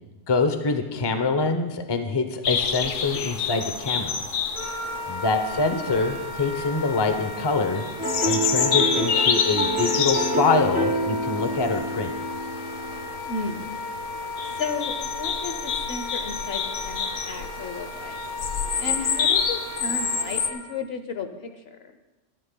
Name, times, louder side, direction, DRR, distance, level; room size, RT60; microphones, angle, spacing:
voice 1, 0.3-4.2 5.1-7.8 8.2-12.1, left 4 dB, 25° left, 7 dB, 0.6 m, -25 dB
sound 1, 2.4-20.5, left 6 dB, 80° left, 1.1 m, -29 dB
Wind instrument woodwind instrument, 4.5-20.6, left 1 dB, 40° left, 4.8 m, -36 dB
voice 2, 5.5-5.8 13.3-13.7 14.1-14.2 14.6-18.2 18.8-21.8, left 4 dB, 60° left, 8 dB, 1.0 m, -34 dB
sound 2, 8.0-13.1, right 1 dB, 5° right, 1.8 m, -27 dB
21.0 x 11.0 x 2.2 m, 1.1 s
omnidirectional pair, 1.2 m